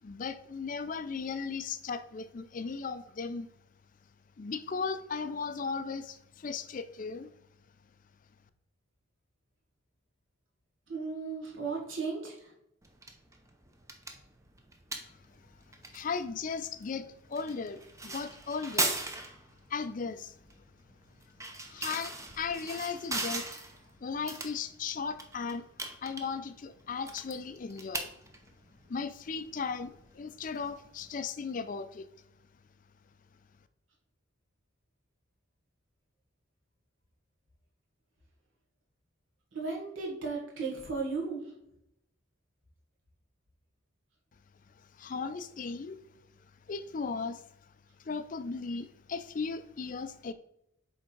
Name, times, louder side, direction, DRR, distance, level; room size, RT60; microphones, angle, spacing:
voice 1, 0.0-3.5 4.4-7.3 15.9-19.0 19.7-20.3 21.7-23.5 24.0-25.7 26.0-28.1 28.9-32.1 45.0-46.0 46.7-47.4 48.0-50.3, left 5 dB, 40° left, 11 dB, 0.4 m, -36 dB
voice 2, 10.9-12.5 39.5-41.5, right 4 dB, 70° right, -2 dB, 1.9 m, -35 dB
sound 1, 12.8-31.2, right 2 dB, 15° right, 0.6 m, -40 dB
8.3 x 3.6 x 4.5 m, 0.78 s
head